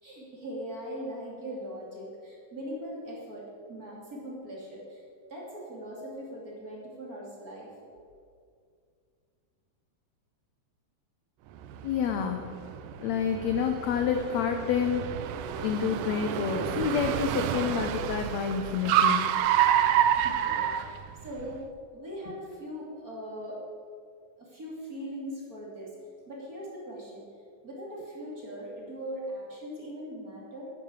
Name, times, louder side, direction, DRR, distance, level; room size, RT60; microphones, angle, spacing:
voice 1, 0.0-5.0 5.3-7.7 20.2-21.6 21.9-23.6 24.4-25.9 26.3-27.2 27.6-30.7, equal, 25° right, -4 dB, 3.0 m, -40 dB
Car, 11.6-21.5, right 10 dB, 80° right, 2.2 m, -28 dB
voice 2, 11.8-12.4 13.0-15.1 15.6-19.3, left 7 dB, 75° left, 5 dB, 1.7 m, -28 dB
11.0 x 9.7 x 8.0 m, 2.3 s
omnidirectional pair, 4.0 m